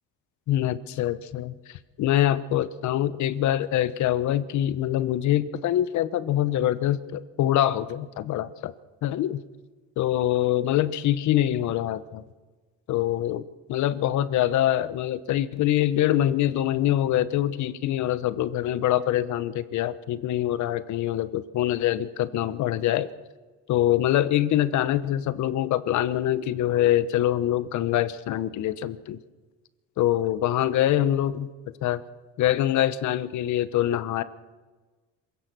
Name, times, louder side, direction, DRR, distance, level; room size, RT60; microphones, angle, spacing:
voice 1, 0.5-1.5 2.0-8.7 9.0-9.4 10.0-12.2 12.9-13.4 13.7-23.1 23.7-29.2 30.0-31.5 31.8-32.0 32.4-34.2, left 12 dB, 65° left, 14 dB, 1.1 m, -24 dB
26.5 x 16.5 x 6.3 m, 1.3 s
cardioid pair, 125°, 31 cm